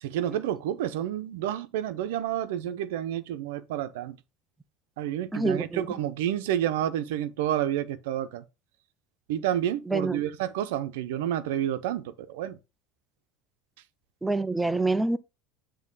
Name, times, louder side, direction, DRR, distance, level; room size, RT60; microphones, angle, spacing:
voice 1, 0.0-4.2 5.0-8.4 9.3-12.6, right 11 dB, 90° right, 0.7 m, -29 dB
voice 2, 5.3-5.9 9.9-10.2 14.2-15.2, right 3 dB, 10° right, 0.5 m, -26 dB
7.5 x 3.0 x 5.5 m
supercardioid pair, 120°, 0 cm